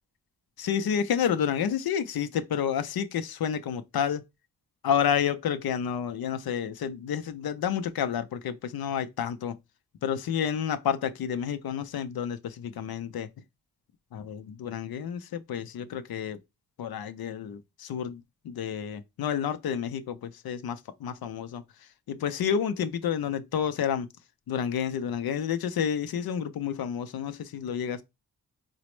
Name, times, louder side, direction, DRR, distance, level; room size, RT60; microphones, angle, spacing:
voice 1, 0.6-4.2 4.8-9.6 10.0-13.3 14.1-16.4 16.8-24.1 24.5-28.0, left 8 dB, 75° left, 0.5 m, -30 dB
4.0 x 2.0 x 3.0 m
cardioid pair, 45°, 37 cm